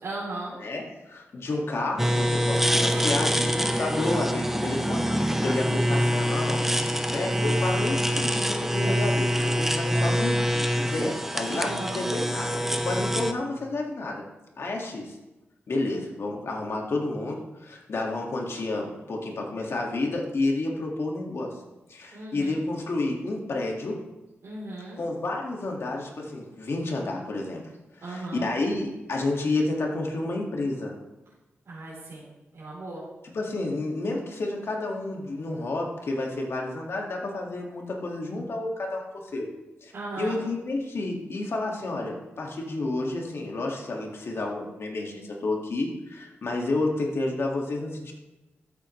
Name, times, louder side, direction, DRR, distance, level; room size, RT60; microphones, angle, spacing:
voice 1, 0.0-0.6 2.9-3.1 7.7-8.1 11.5-12.0 22.1-22.6 24.4-25.0 28.0-28.5 31.7-32.3 32.5-33.0 39.9-40.4, right 2 dB, 80° right, -8 dB, 3.7 m, -36 dB
voice 2, 0.6-6.6 7.1-10.3 10.8-14.2 14.6-15.2 15.7-21.5 21.9-24.0 25.0-27.6 28.0-30.9 33.3-39.5 39.8-48.1, left 2 dB, 65° left, 0 dB, 2.0 m, -30 dB
sound 1, 2.0-13.3, equal, 5° right, 0.5 m, -25 dB
13.5 x 7.9 x 3.2 m, 1.0 s
wide cardioid pair, 105°, 5 cm